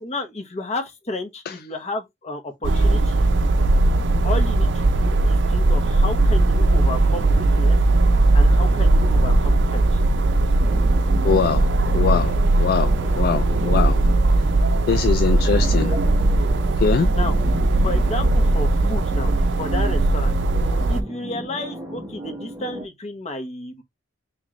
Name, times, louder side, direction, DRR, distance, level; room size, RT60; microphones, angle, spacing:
voice 1, 0.0-3.3 4.2-7.8 8.3-10.0 17.1-17.4 17.8-20.4 20.9-23.8, left 2 dB, 35° left, 1.0 m, -32 dB
sound 1, 2.6-21.0, right 2 dB, 70° right, 0.5 m, -18 dB
sound 2, 10.6-22.9, equal, 15° right, 1.0 m, -35 dB
voice 2, 11.2-14.0 14.9-16.0 16.8-17.1, left 6 dB, 55° left, 0.3 m, -23 dB
3.8 x 3.2 x 3.0 m
head